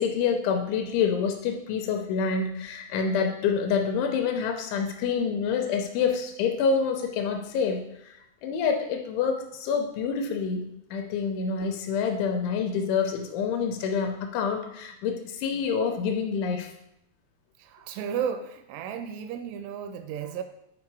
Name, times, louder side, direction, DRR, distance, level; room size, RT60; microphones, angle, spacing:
voice 1, 0.0-8.1 8.4-16.7, left 6 dB, 80° left, 5 dB, 2.9 m, -27 dB
voice 2, 17.6-20.4, right 8 dB, 85° right, 9 dB, 2.8 m, -33 dB
8.6 x 4.7 x 4.6 m, 0.80 s
omnidirectional pair, 5.7 m